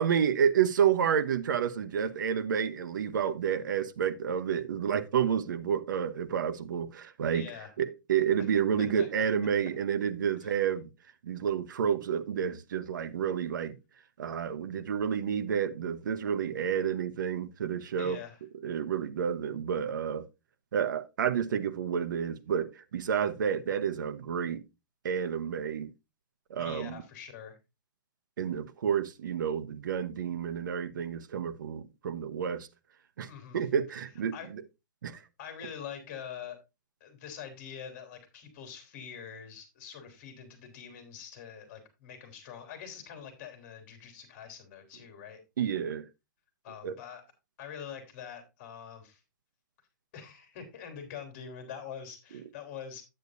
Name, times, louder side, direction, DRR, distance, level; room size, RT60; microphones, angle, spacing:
voice 1, 0.0-7.4 7.8-10.9 11.2-13.8 14.2-18.2 18.6-20.2 20.7-24.6 25.0-25.9 26.5-27.0 28.4-32.7 33.2-34.6 35.0-35.2 45.6-46.0 46.8-47.0, right 8 dB, 70° right, 1.0 m, -30 dB
voice 2, 7.3-7.7 8.8-9.2 10.4-10.6 18.0-18.4 26.6-27.6 33.3-33.6 34.3-34.5 35.4-36.6 37.0-45.4 46.6-47.2 47.6-49.2 50.1-53.0, left 7 dB, 40° left, 3.3 m, -44 dB
9.5 x 9.1 x 2.6 m
hypercardioid pair, 160°, 11 cm